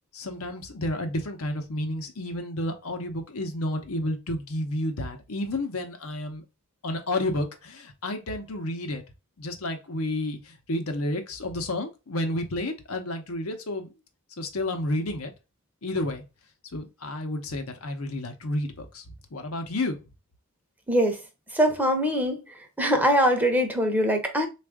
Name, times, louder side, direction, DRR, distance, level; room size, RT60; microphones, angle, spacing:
voice 1, 0.1-6.4 6.8-9.0 9.4-13.9 14.4-15.3 15.8-16.2 16.7-19.0 19.3-20.0, left 1 dB, 85° left, 0.8 m, -31 dB
voice 2, 21.5-22.4 22.8-24.5, equal, 10° right, 0.7 m, -22 dB
3.5 x 2.5 x 3.5 m
head